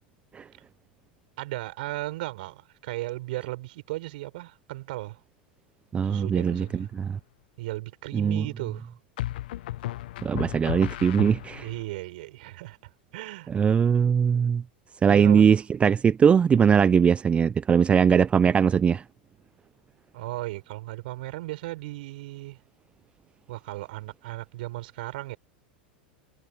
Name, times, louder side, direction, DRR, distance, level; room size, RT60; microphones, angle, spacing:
voice 1, 1.4-5.2 6.0-6.9 7.6-8.9 11.6-12.8 13.1-13.5 15.1-15.6 20.1-22.6 23.5-25.4, right 18 dB, 70° right, 5.2 m, -36 dB
voice 2, 5.9-7.2 8.1-8.5 10.2-11.7 13.5-14.6 15.0-19.0, right 7 dB, 20° right, 0.4 m, -21 dB
sound 1, 6.5-7.0 9.2-11.8, left 15 dB, 70° left, 0.6 m, -35 dB
hypercardioid pair, 100°, 5 cm